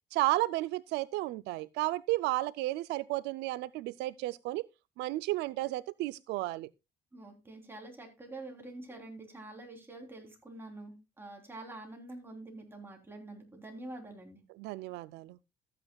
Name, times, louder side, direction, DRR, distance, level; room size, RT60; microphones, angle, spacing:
voice 1, 0.1-4.7 5.0-6.7 14.6-15.4, right 18 dB, 85° right, 0.4 m, -33 dB
voice 2, 7.1-14.4, right 2 dB, 15° right, 3.3 m, -46 dB
14.0 x 8.9 x 2.3 m
cardioid pair, 110°, 17 cm